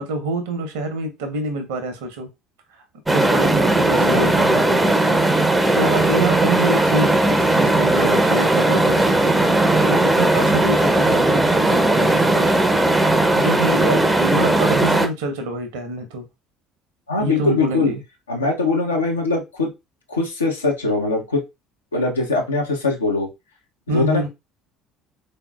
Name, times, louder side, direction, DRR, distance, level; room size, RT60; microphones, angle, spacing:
voice 1, 0.0-2.3 3.1-12.6 13.2-16.3 17.2-18.0 23.9-24.3, right 2 dB, 65° right, 0.7 m, -26 dB
sound 1, 3.1-15.1, right 2 dB, 10° right, 0.5 m, -17 dB
voice 2, 3.9-4.3 17.1-17.9 18.3-19.7 20.1-21.4 21.9-23.3 23.9-24.3, left 3 dB, 80° left, 0.7 m, -21 dB
3.6 x 2.8 x 2.2 m
figure-of-eight pair, 60°, 0 cm